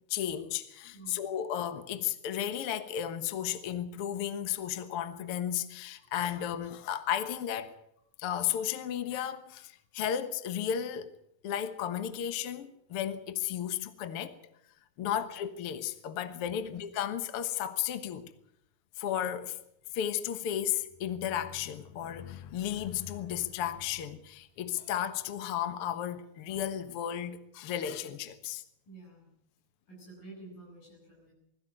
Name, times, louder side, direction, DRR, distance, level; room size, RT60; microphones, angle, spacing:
voice 1, 0.1-7.7 8.2-11.1 11.4-14.4 15.0-18.3 19.0-19.6 19.9-28.6, left 10 dB, 55° left, 1.7 m, -34 dB
voice 2, 0.9-1.3 6.0-6.1 15.0-15.3 16.5-16.7 28.9-29.3 29.9-31.3, right 3 dB, 90° left, 9.9 m, -50 dB
21.0 x 14.5 x 8.9 m
omnidirectional pair, 3.9 m